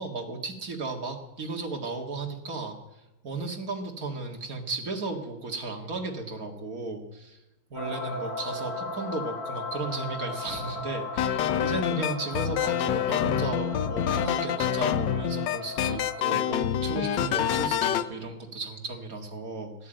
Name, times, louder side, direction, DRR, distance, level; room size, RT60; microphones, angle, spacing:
voice 1, 0.0-2.8 3.2-7.4 7.7-19.9, right 3 dB, 45° right, 3 dB, 2.3 m, -35 dB
sound 1, 7.7-16.5, left 2 dB, 50° left, 3.0 m, -37 dB
sound 2, 11.2-18.1, left 10 dB, 70° left, 1.3 m, -27 dB
14.0 x 11.0 x 8.9 m, 1.0 s
omnidirectional pair, 2.1 m